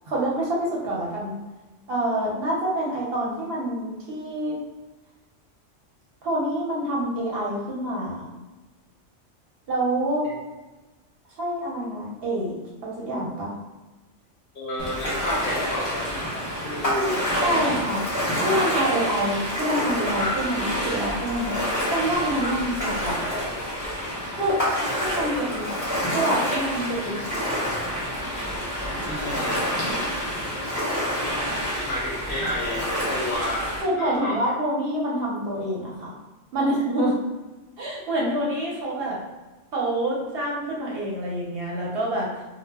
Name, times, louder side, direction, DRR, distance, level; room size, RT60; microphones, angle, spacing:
voice 1, 0.1-1.4 1.9-4.6 6.2-8.3 9.7-10.2 11.4-12.5 12.8-13.5 17.4-18.0 18.4-21.6 21.9-23.2 24.3-24.6 25.0-27.4 33.8-36.1 36.5-37.1 37.8-39.2 39.7-42.3, right 1 dB, 60° right, -4 dB, 0.8 m, -26 dB
voice 2, 14.5-17.8 18.8-19.1 20.2-20.4 22.4-22.6 29.0-29.9 31.8-34.4, left 1 dB, 60° left, -4 dB, 0.6 m, -31 dB
Ocean, 14.8-33.8, equal, 20° left, 0.6 m, -28 dB
2.1 x 2.0 x 3.3 m, 1.2 s
omnidirectional pair, 1.2 m